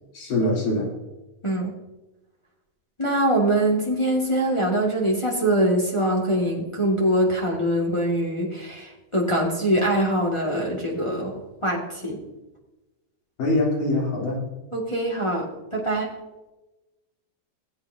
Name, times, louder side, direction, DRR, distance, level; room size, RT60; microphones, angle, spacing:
voice 1, 0.1-0.9 13.4-14.4, left 1 dB, 80° left, -4 dB, 4.9 m, -23 dB
voice 2, 3.0-11.3 11.6-12.2 14.7-15.5 15.7-16.1, right 1 dB, 15° left, -4 dB, 1.1 m, -23 dB
17.0 x 8.6 x 2.8 m, 1.0 s
omnidirectional pair, 3.9 m